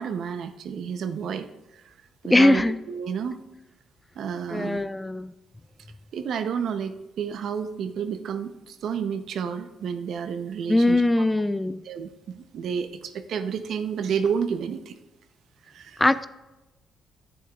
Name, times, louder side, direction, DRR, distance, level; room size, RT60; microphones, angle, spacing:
voice 1, 0.0-1.5 1.9-2.0 2.2-3.4 4.2-4.8 6.1-11.0 11.8-15.0 15.7-16.0, right 7 dB, 70° right, 9 dB, 0.7 m, -30 dB
voice 2, 2.3-2.8 4.5-5.3 10.7-11.8 16.0-16.3, left 1 dB, 15° left, 15 dB, 0.3 m, -21 dB
10.0 x 9.4 x 2.4 m, 1.0 s
cardioid pair, 90°, 0 cm